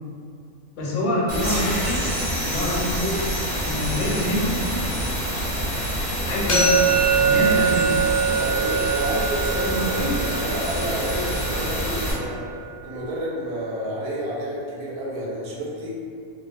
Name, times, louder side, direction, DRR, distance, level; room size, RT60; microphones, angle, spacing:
voice 1, 0.7-2.1 2.4-3.3 3.6-4.7 6.3-6.8 7.1-8.0 9.6-10.2, left 1 dB, 85° left, -5 dB, 1.1 m, -26 dB
sound 1, 1.3-12.1, equal, 45° right, 0.9 m, -27 dB
sound 2, 1.4-6.1, equal, 15° right, 0.7 m, -35 dB
sound 3, 6.5-12.3, right 5 dB, 55° left, 0.8 m, -23 dB
voice 2, 8.2-12.5 12.8-15.9, equal, 90° right, -5 dB, 1.1 m, -30 dB
2.5 x 2.3 x 2.5 m, 2.3 s
omnidirectional pair, 1.5 m